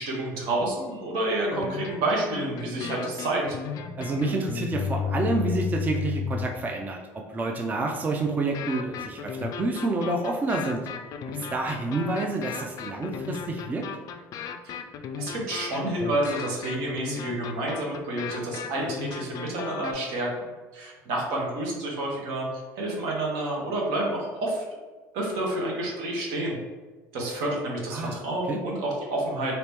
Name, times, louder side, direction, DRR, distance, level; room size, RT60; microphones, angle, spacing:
voice 1, 0.0-3.6 14.6-14.8 15.2-22.5 22.7-24.6 25.1-26.6 27.1-29.5, right 1 dB, 70° right, -2 dB, 1.1 m, -29 dB
sound 1, 1.4-6.7 8.5-19.9, left 7 dB, 50° left, 0.3 m, -34 dB
voice 2, 4.0-7.0 7.3-10.8 11.3-13.8 27.9-28.1 28.5-28.6, right 2 dB, 20° right, 1 dB, 0.4 m, -28 dB
2.9 x 2.9 x 3.4 m, 1.4 s
supercardioid pair, 100°, 8 cm